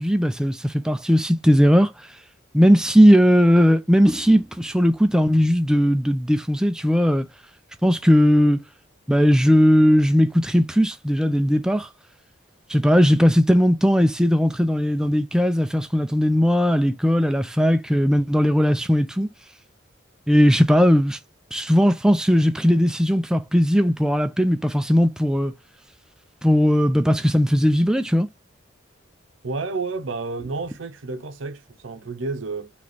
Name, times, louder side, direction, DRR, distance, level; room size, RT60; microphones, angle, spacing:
voice 1, 0.0-1.9 2.5-7.3 7.8-8.6 9.1-11.9 12.7-19.3 20.3-21.2 21.5-25.5 26.4-28.3, equal, 5° right, 0.3 m, -18 dB
voice 2, 29.4-32.7, right 3 dB, 85° right, 0.7 m, -30 dB
3.2 x 2.9 x 4.0 m
head